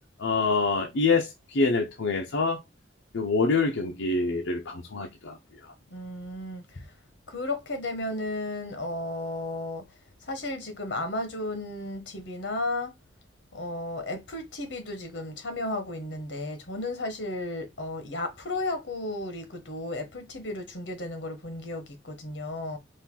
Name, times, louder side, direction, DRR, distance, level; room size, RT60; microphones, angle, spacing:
voice 1, 0.2-2.6 3.1-5.7, left 4 dB, 85° left, 0.6 m, -26 dB
voice 2, 5.9-6.9 7.3-9.8 10.2-12.9 13.5-22.8, left 2 dB, 70° left, 1.2 m, -34 dB
4.4 x 2.5 x 3.6 m
head